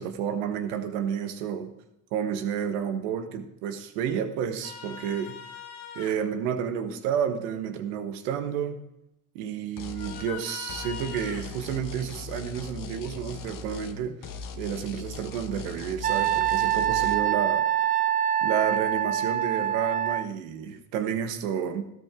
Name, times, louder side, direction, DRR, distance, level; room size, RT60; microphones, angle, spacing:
voice 1, 0.0-1.7 2.1-5.4 5.9-8.8 9.3-14.2 14.6-17.6 18.4-21.8, right 8 dB, 80° right, 7 dB, 1.4 m, -30 dB
sound 1, 4.6-6.1 9.9-11.5 14.4-14.5, left 7 dB, 70° left, 2.1 m, -41 dB
sound 2, 9.8-10.3 10.7-14.0 14.2-17.1, left 3 dB, 50° left, 1.4 m, -39 dB
Wind instrument woodwind instrument, 16.0-20.2, right 11 dB, 25° right, 0.3 m, -25 dB
13.5 x 12.5 x 3.7 m, 0.85 s
hypercardioid pair, 60°, 41 cm